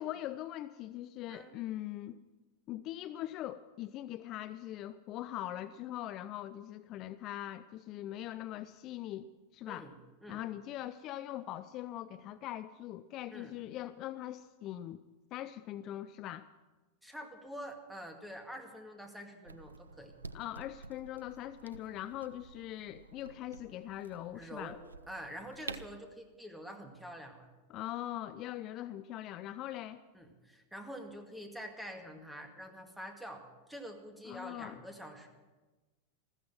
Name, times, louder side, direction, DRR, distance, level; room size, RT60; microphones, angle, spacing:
voice 1, 0.0-2.2 2.7-9.9 10.3-15.0 15.3-16.5 20.3-24.7 27.7-30.0 34.2-34.8, left 13 dB, 40° left, 13 dB, 0.5 m, -41 dB
voice 2, 17.0-20.1 24.3-24.8 25.1-27.5 30.1-35.3, equal, 5° right, 4 dB, 2.1 m, -46 dB
sound 1, 19.4-26.0, right 4 dB, 80° right, 0.5 m, -50 dB
14.5 x 14.5 x 6.0 m, 1.2 s
figure-of-eight pair, 90°, 0 cm